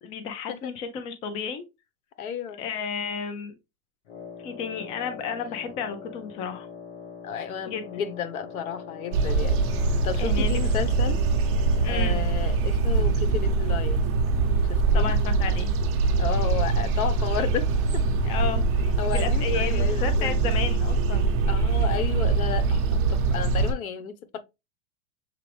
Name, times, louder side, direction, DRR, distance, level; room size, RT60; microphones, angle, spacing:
voice 1, 0.0-1.6 2.6-3.5 4.4-6.7 7.7-7.9 10.2-10.9 11.8-12.2 14.9-15.7 18.2-21.3, left 6 dB, 15° left, 0.3 m, -32 dB
voice 2, 2.2-2.6 7.2-9.6 10.0-11.2 11.9-14.0 14.7-15.1 16.2-17.7 17.9-18.0 19.0-20.3 21.5-22.8 23.1-24.4, left 8 dB, 90° left, 1.1 m, -32 dB
Wind instrument woodwind instrument, 4.1-12.6, left 6 dB, 55° left, 1.5 m, -42 dB
sound 1, 9.1-23.7, right 3 dB, 35° right, 0.8 m, -23 dB
6.7 x 2.5 x 3.2 m
supercardioid pair, 140°, 41 cm